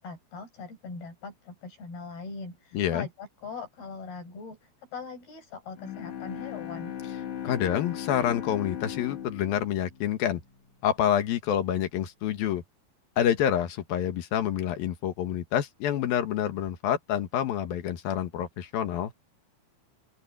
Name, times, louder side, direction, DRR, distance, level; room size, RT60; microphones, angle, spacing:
voice 1, 0.0-6.9, left 4 dB, 90° left, 9.3 m, -41 dB
voice 2, 2.7-3.1 7.4-10.4 10.8-12.6 13.2-19.1, left 10 dB, 75° left, 3.2 m, -27 dB
Bowed string instrument, 5.7-10.8, left 10 dB, 55° left, 3.2 m, -38 dB
open air
omnidirectional pair, 4.3 m